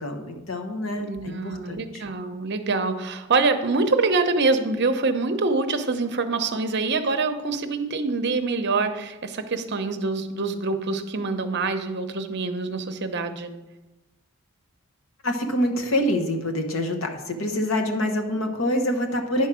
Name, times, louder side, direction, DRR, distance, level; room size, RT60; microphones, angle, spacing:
voice 1, 0.0-2.0 15.2-19.5, left 1 dB, 65° left, 4 dB, 1.0 m, -26 dB
voice 2, 0.9-13.5, right 3 dB, 50° right, 8 dB, 0.7 m, -25 dB
10.0 x 4.7 x 6.1 m, 1.0 s
head